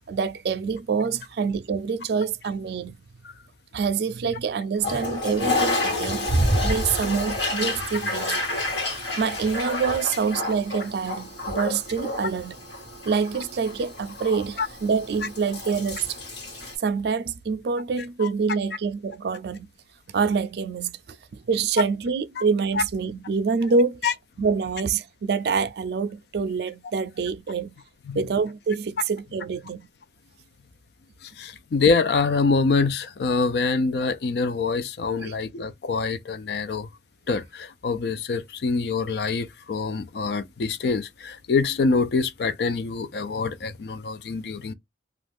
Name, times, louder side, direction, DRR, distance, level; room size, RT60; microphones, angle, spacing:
voice 1, 0.1-3.0 3.7-8.4 8.9-12.6 13.1-16.2 16.8-19.7 20.1-20.9 21.3-24.0 24.4-27.7 28.1-29.9 35.2-35.3, right 5 dB, 65° right, 0.4 m, -26 dB
Toilet flush, 4.8-16.7, left 1 dB, 80° left, 1.4 m, -29 dB
voice 2, 31.2-36.9 37.3-44.7, left 4 dB, 65° left, 0.4 m, -25 dB
2.4 x 2.3 x 3.4 m
head